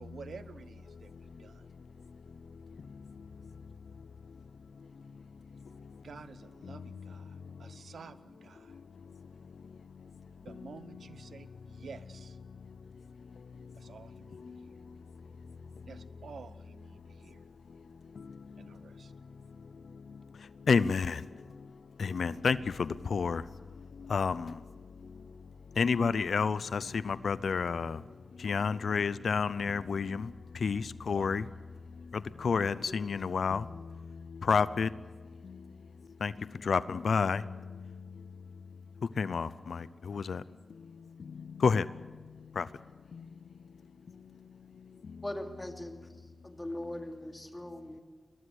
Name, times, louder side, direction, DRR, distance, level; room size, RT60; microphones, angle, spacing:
voice 1, 0.0-1.7 6.0-8.7 10.4-12.4 13.7-14.8 15.8-17.4 18.6-19.1 31.0-31.3, right 5 dB, 85° right, 13 dB, 1.0 m, -51 dB
voice 2, 20.7-21.2 22.0-23.4 24.1-24.5 25.8-28.0 28.4-30.3 30.6-31.4 32.1-33.8 34.4-34.9 36.2-36.3 36.6-37.4 39.2-40.4 41.6-41.9 42.6-42.7, left 5 dB, 80° left, 17 dB, 0.6 m, -29 dB
voice 3, 45.2-46.1 46.4-48.0, left 1 dB, 20° left, 4 dB, 2.8 m, -40 dB
22.0 x 21.0 x 8.2 m, 1.4 s
wide cardioid pair, 80°, 0 cm